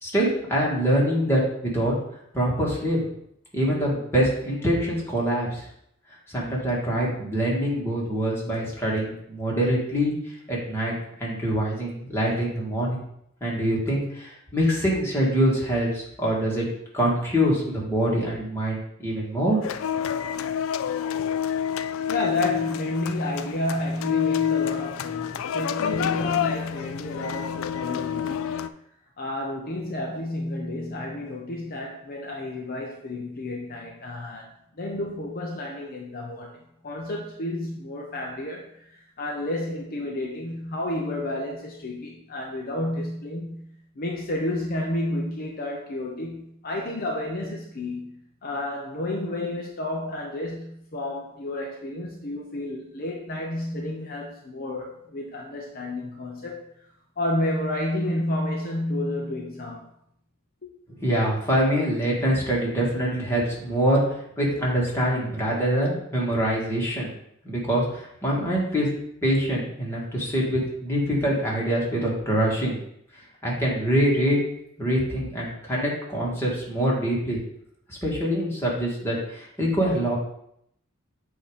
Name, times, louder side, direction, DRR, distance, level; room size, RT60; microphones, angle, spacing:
voice 1, 0.0-1.9 2.3-3.1 3.5-5.7 6.3-10.1 10.5-13.0 13.4-16.7 16.9-19.6 61.0-64.0 64.4-67.1 67.4-68.9 69.2-72.8 73.4-74.4 74.8-77.4 77.9-80.2, equal, 15° left, -5 dB, 1.8 m, -24 dB
sound 1, 19.6-28.7, left 8 dB, 85° left, 0.4 m, -28 dB
voice 2, 21.7-28.5 29.2-43.7 44.0-56.7 57.2-59.9 60.6-60.7, left 1 dB, 45° left, 0 dB, 0.7 m, -31 dB
7.9 x 2.9 x 5.0 m, 0.73 s
head